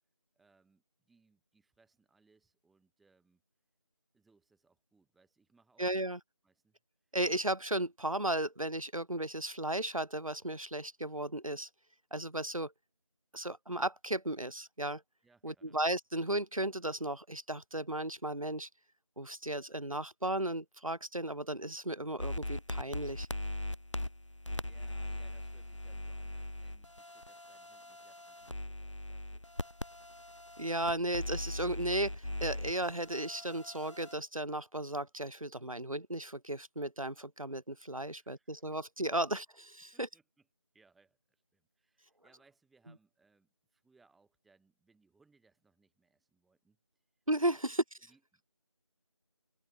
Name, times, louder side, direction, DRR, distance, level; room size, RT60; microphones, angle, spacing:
voice 1, 0.3-3.4 4.1-6.0 6.4-6.8 15.2-15.8 24.7-29.4 38.1-38.6 39.9-40.5 40.7-46.8 47.5-47.7 48.0-48.5, right 4 dB, ahead, 6.7 m, -70 dB
voice 2, 5.8-6.2 7.1-11.7 12.1-12.7 13.3-15.0 15.4-18.7 19.2-23.3 30.6-40.1 47.3-47.8, right 1 dB, 85° right, 3.4 m, -35 dB
sound 1, 22.2-34.1, left 1 dB, 60° left, 4.2 m, -40 dB
figure-of-eight pair, 180°, 17 cm